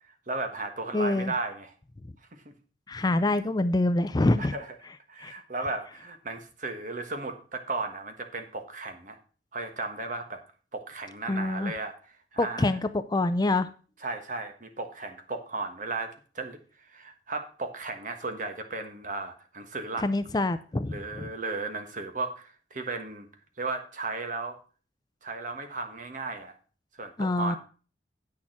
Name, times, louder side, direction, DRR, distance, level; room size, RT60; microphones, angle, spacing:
voice 1, 0.3-1.7 2.3-2.5 3.0-3.2 4.4-4.7 5.1-9.2 9.5-10.4 10.7-12.0 12.3-12.8 14.0-16.6 16.9-20.1 20.9-23.3 23.6-24.6 25.2-26.5 27.0-27.6, right 3 dB, 45° right, 7 dB, 1.4 m, -35 dB
voice 2, 0.9-1.3 2.9-4.5 5.2-5.3 11.3-11.7 12.4-13.7 20.0-21.3 27.2-27.6, left 2 dB, 20° left, 11 dB, 0.4 m, -26 dB
8.5 x 6.6 x 5.9 m, 0.38 s
head